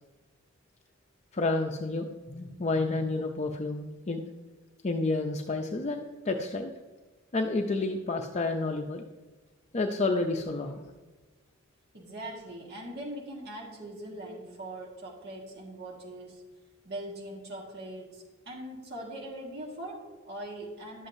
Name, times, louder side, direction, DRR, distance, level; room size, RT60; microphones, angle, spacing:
voice 1, 1.3-4.2 4.8-6.7 7.3-9.0 9.7-10.8, left 3 dB, 35° left, 3 dB, 0.5 m, -30 dB
voice 2, 11.9-16.4 16.8-21.1, right 1 dB, 55° right, -2 dB, 1.6 m, -41 dB
11.5 x 7.5 x 2.6 m, 1.3 s
head